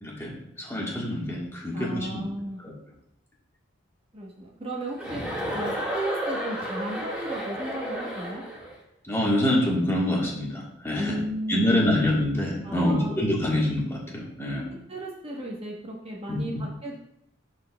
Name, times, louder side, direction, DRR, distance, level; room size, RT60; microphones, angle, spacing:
voice 1, 0.0-2.2 2.6-2.7 9.1-11.2 11.5-14.7 16.3-16.4, left 1 dB, 15° left, -3 dB, 1.3 m, -26 dB
voice 2, 1.7-2.6 4.1-5.2 5.5-8.4 10.9-12.1 12.6-13.2 14.9-17.0, right 1 dB, 30° right, -2 dB, 1.0 m, -34 dB
Chuckle chortle, 5.0-8.7, equal, 5° right, 1.7 m, -32 dB
12.0 x 4.2 x 2.2 m, 0.79 s
head